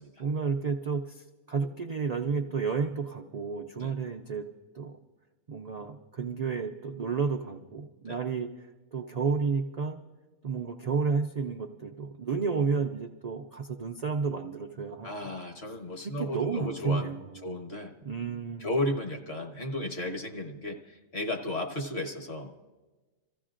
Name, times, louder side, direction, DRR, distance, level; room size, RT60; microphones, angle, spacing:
voice 1, 0.2-4.5 4.7-5.0 5.5-8.7 8.9-10.0 10.4-15.1 16.0-17.5 18.0-18.7, right 5 dB, 85° right, 3 dB, 0.3 m, -31 dB
voice 2, 15.0-17.1 17.4-17.9 18.6-22.6, left 1 dB, 50° left, 3 dB, 1.3 m, -34 dB
27.5 x 14.5 x 2.5 m, 1.2 s
omnidirectional pair, 1.4 m